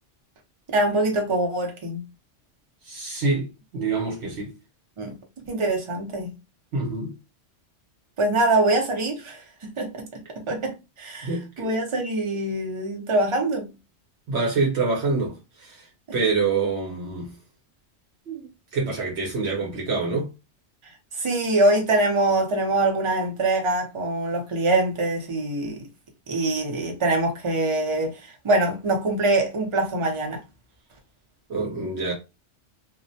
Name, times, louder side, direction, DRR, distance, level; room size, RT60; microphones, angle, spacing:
voice 1, 0.7-2.0 5.0-5.2 5.5-6.3 8.2-11.3 11.6-13.7 21.1-25.9 26.3-28.2 28.4-30.4, right 2 dB, 35° right, 0.5 m, -24 dB
voice 2, 2.8-3.5 3.7-4.5 6.7-7.1 11.2-11.7 14.3-15.9 16.1-17.3 18.3-18.4 18.7-20.3 31.5-32.1, right 4 dB, 70° right, 0.9 m, -26 dB
2.4 x 2.0 x 2.6 m
omnidirectional pair, 1.2 m